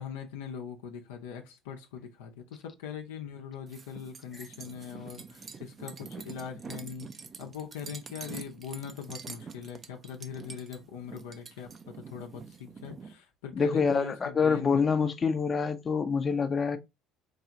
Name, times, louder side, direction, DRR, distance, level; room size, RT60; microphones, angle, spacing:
voice 1, 0.0-7.1 7.4-14.8, left 7 dB, 80° left, 0.6 m, -41 dB
sound 1, 3.7-13.1, right 5 dB, 35° right, 0.6 m, -46 dB
voice 2, 13.5-16.8, left 5 dB, 35° left, 0.6 m, -26 dB
4.7 x 2.4 x 2.9 m
hypercardioid pair, 70°, 0 cm